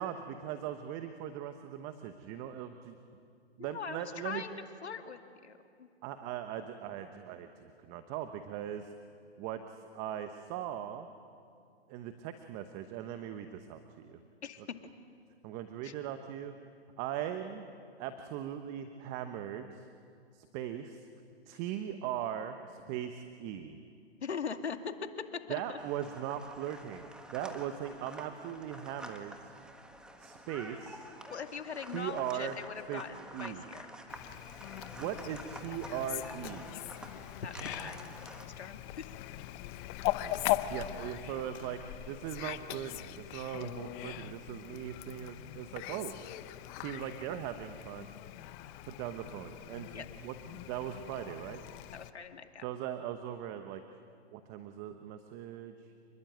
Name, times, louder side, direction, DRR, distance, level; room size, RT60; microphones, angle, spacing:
voice 1, 0.0-2.9 3.6-4.4 6.0-8.9 9.4-9.6 9.9-11.1 11.9-14.2 15.4-16.5 17.0-17.6 18.0-19.9 20.3-21.1 21.5-23.8 25.5-27.1 27.3-29.5 30.2-31.1 31.9-32.5 32.9-33.0 33.3-33.6 35.0-36.8 40.7-41.8 42.1-46.2 46.7-48.1 48.9-51.6 52.6-53.8 54.3-55.7, right 10 dB, 25° right, 8 dB, 1.0 m, -39 dB
voice 2, 3.6-4.6 4.8-5.9 14.4-14.6 15.8-15.9 24.2-24.9 25.3-25.8 31.3-33.9 37.4-39.1 49.9-50.1 51.9-52.7, left 6 dB, 70° left, 6 dB, 2.3 m, -41 dB
sound 1, 25.8-38.5, right 1 dB, ahead, 1.3 m, -49 dB
Fowl, 34.1-52.1, left 15 dB, 20° left, 0.8 m, -40 dB
28.0 x 21.5 x 9.1 m, 2.4 s
hypercardioid pair, 135°, 34 cm